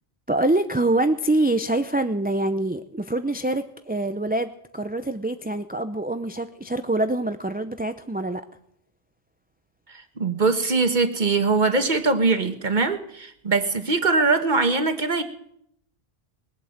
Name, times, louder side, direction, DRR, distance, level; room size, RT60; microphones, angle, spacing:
voice 1, 0.3-8.4, right 2 dB, 10° right, 9 dB, 0.4 m, -25 dB
voice 2, 9.9-15.2, right 3 dB, 50° right, 7 dB, 1.6 m, -22 dB
21.0 x 8.5 x 7.9 m, 0.73 s
omnidirectional pair, 1.1 m